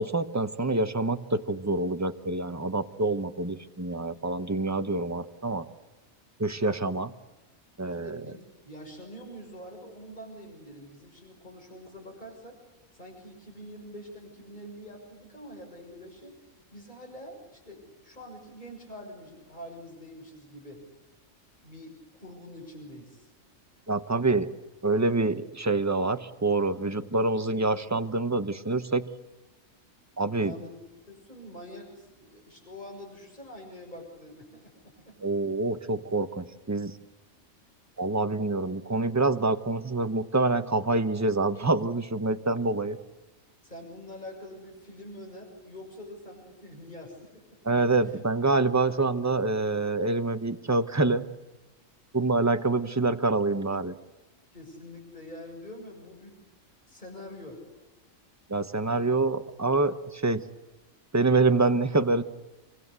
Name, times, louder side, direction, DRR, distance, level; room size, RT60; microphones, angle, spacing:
voice 1, 0.0-5.6 6.4-7.1 7.8-8.2 23.9-24.5 24.8-29.0 30.2-30.5 35.2-36.9 38.0-43.0 47.6-51.3 52.1-53.9 58.5-60.4 61.1-62.2, right 3 dB, 15° right, 10 dB, 1.0 m, -26 dB
voice 2, 8.0-12.6 12.9-16.4 16.7-20.9 21.6-23.3 30.4-30.8 31.1-35.2 43.6-47.6 48.0-48.2 54.5-56.4 56.9-57.7, left 1 dB, 35° left, 2 dB, 6.9 m, -45 dB
27.5 x 24.5 x 8.3 m, 1.1 s
omnidirectional pair, 1.4 m